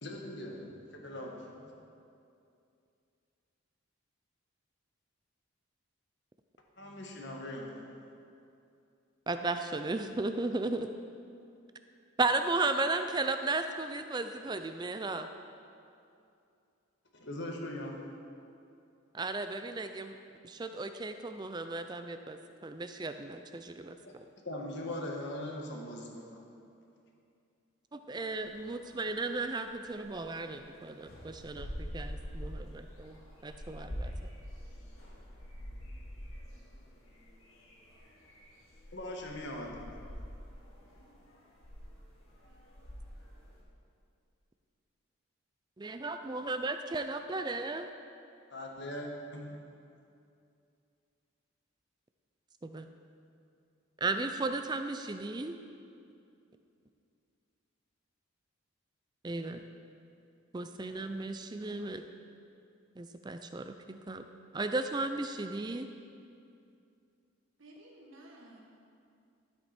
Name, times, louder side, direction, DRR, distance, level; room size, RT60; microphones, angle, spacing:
voice 1, 0.0-1.5 6.8-8.0 17.1-18.0 24.0-24.1 24.5-26.5 38.9-39.8 48.5-49.6, left 1 dB, 55° left, 0 dB, 1.4 m, -40 dB
voice 2, 9.3-10.9 12.2-15.3 19.1-20.1 20.4-24.0 27.9-33.2 33.4-34.1 45.8-47.9 52.6-52.9 54.0-55.5 59.2-59.6 60.5-62.0 63.0-64.2 64.5-65.9, right 3 dB, 20° right, 8 dB, 0.4 m, -35 dB
sound 1, 28.3-30.8 31.0-43.6, equal, 75° left, 2.1 m, -46 dB
voice 3, 67.6-68.6, right 1 dB, 65° right, -1 dB, 1.6 m, -53 dB
13.0 x 7.9 x 4.3 m, 2.6 s
head